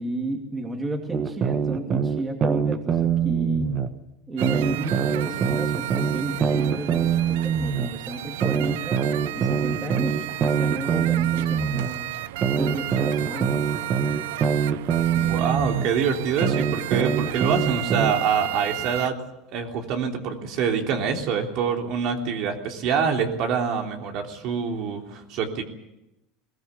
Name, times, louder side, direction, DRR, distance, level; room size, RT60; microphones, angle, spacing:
voice 1, 0.0-3.7 4.3-9.0 9.3-12.1 12.5-13.5, right 2 dB, 15° right, 4 dB, 2.5 m, -32 dB
sound 1, 1.1-3.9 4.4-7.9 8.4-11.9 12.4-15.9 16.4-18.1, right 7 dB, 35° right, 1.6 m, -24 dB
sound 2, 4.4-19.1, right 16 dB, 90° right, 0.7 m, -33 dB
voice 2, 15.1-19.2 19.5-25.6, right 6 dB, 55° right, 3 dB, 3.3 m, -25 dB
22.0 x 18.0 x 8.3 m, 0.90 s
supercardioid pair, 140°, 0 cm